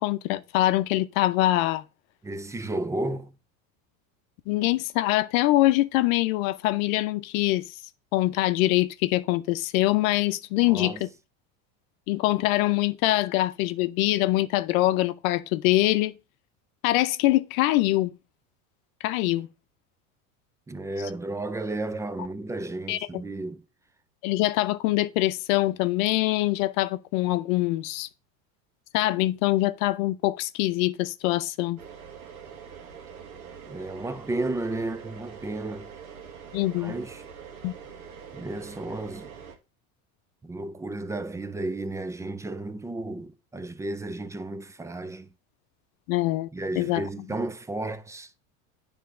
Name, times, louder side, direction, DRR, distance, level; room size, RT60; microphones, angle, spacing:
voice 1, 0.0-1.8 4.5-7.6 8.1-11.1 12.1-16.2 16.8-18.1 19.0-19.5 22.9-23.0 24.2-28.1 28.9-31.8 36.5-36.9 37.6-37.8 46.1-46.5 46.8-47.0, left 17 dB, 70° left, 0.7 m, -24 dB
voice 2, 2.2-3.4 10.6-11.0 20.7-23.6 33.7-35.9 36.8-37.2 38.3-39.3 40.4-45.3 46.5-48.3, right 2 dB, 10° right, 0.3 m, -33 dB
sound 1, 31.8-39.6, right 7 dB, 90° right, 1.6 m, -44 dB
9.4 x 3.5 x 4.8 m
supercardioid pair, 105°, 42 cm